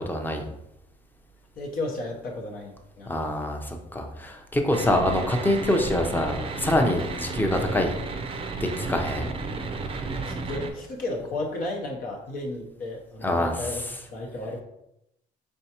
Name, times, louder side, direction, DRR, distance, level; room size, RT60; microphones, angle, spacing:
voice 1, 0.1-0.5 3.1-7.9 8.6-9.3 13.2-13.7, left 1 dB, 10° left, 3 dB, 0.6 m, -25 dB
voice 2, 1.6-3.3 10.3-13.8 14.1-14.6, left 2 dB, 60° left, -1 dB, 0.8 m, -33 dB
sound 1, 4.7-10.7, right 3 dB, 35° right, 0.5 m, -32 dB
4.5 x 3.4 x 2.9 m, 0.84 s
cardioid pair, 110°, 17 cm